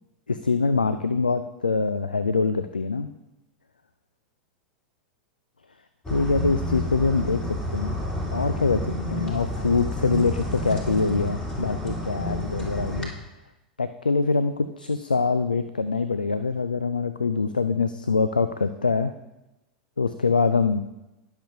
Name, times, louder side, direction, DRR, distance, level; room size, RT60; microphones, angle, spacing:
voice 1, 0.3-3.1 6.1-8.0 8.3-13.1 13.8-19.1 20.0-20.8, left 4 dB, 80° left, 11 dB, 0.4 m, -24 dB
sound 1, 6.0-13.0, equal, 20° left, 2.9 m, -30 dB
20.0 x 6.8 x 2.8 m, 0.98 s
figure-of-eight pair, 90°, 5 cm